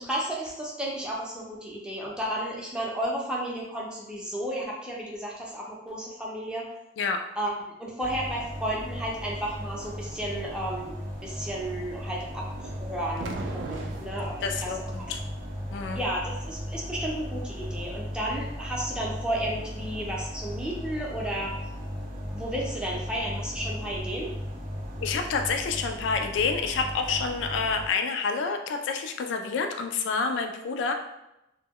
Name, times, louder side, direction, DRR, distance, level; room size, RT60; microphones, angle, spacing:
voice 1, 0.0-6.7 7.4-7.5 7.8-11.0 11.2-12.5 12.8-14.7 15.0-15.1 15.9-21.5 22.3-24.3, right 1 dB, 5° right, -4 dB, 0.5 m, -33 dB
sound 1, 8.0-27.9, equal, 45° right, 0.6 m, -36 dB
sound 2, 12.6-14.4, right 3 dB, 85° right, 0.3 m, -37 dB
voice 2, 14.4-15.2 15.7-16.0 25.0-30.9, left 5 dB, 85° left, 5 dB, 0.3 m, -28 dB
2.1 x 2.0 x 3.5 m, 0.90 s
head